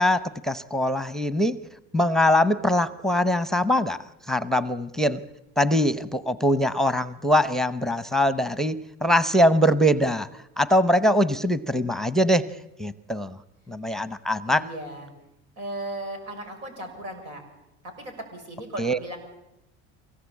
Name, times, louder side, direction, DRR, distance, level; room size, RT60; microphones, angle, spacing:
voice 1, 0.0-1.6 1.9-5.2 5.6-10.3 10.6-13.4 13.7-14.7 18.8-19.0, equal, ahead, 15 dB, 0.8 m, -22 dB
voice 2, 14.4-15.1 15.6-17.4 17.8-19.2, right 1 dB, 85° right, 5 dB, 6.5 m, -36 dB
24.0 x 18.0 x 8.5 m, 0.88 s
supercardioid pair, 90°, 36 cm